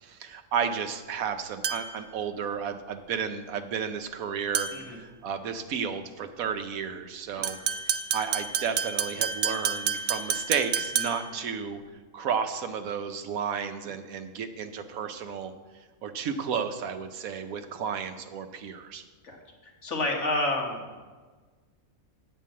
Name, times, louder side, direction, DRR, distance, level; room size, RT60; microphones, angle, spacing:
voice 1, 0.0-7.6 7.9-11.8 12.1-15.5 16.0-19.0, right 7 dB, 85° right, 8 dB, 1.2 m, -32 dB
sound 1, 1.6-2.1 4.5-5.0 7.4-11.4, right 7 dB, 60° right, 0.6 m, -30 dB
voice 2, 19.6-20.9, left 2 dB, 60° left, 0 dB, 1.7 m, -30 dB
9.1 x 4.5 x 7.5 m, 1.4 s
omnidirectional pair, 1.4 m